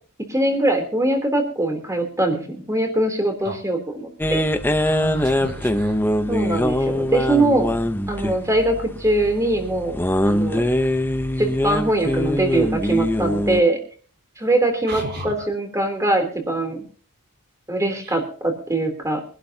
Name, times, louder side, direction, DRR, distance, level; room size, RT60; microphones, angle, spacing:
voice 1, 0.3-4.4 6.3-7.7 8.1-10.0 10.2-10.7 11.4-13.8 14.4-16.8 17.7-19.2, right 1 dB, 15° right, 5 dB, 3.3 m, -22 dB
sound 1, 4.2-13.6, left 1 dB, 10° left, 0.7 m, -23 dB
voice 2, 4.9-6.0 14.9-15.5 18.0-18.2, right 2 dB, 45° right, 2 dB, 4.0 m, -33 dB
24.5 x 11.5 x 2.8 m, 0.41 s
head